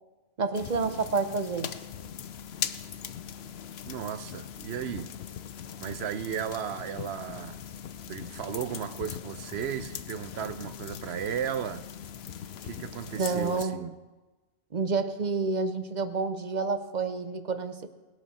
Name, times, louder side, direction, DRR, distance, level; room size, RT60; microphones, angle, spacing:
voice 1, 0.4-1.7 13.2-13.8 14.7-17.9, right 4 dB, 45° right, 0.9 m, -29 dB
sound 1, 0.5-13.6, left 9 dB, 75° left, 0.9 m, -40 dB
voice 2, 3.9-5.1 5.8-7.6 8.1-11.8 12.6-13.9, right 9 dB, 80° right, 0.9 m, -35 dB
19.5 x 12.0 x 4.2 m
omnidirectional pair, 1.1 m